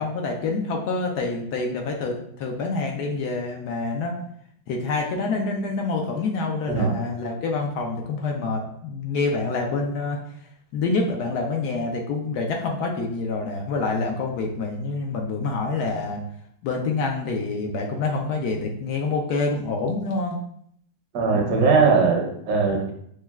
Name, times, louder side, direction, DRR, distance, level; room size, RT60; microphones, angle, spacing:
voice 1, 0.0-4.2 4.7-10.2 10.7-16.2 16.6-20.4, left 3 dB, 70° left, 1 dB, 1.0 m, -27 dB
voice 2, 21.1-22.9, right 4 dB, 75° right, 0 dB, 1.4 m, -20 dB
6.1 x 2.2 x 2.3 m, 0.70 s
omnidirectional pair, 2.0 m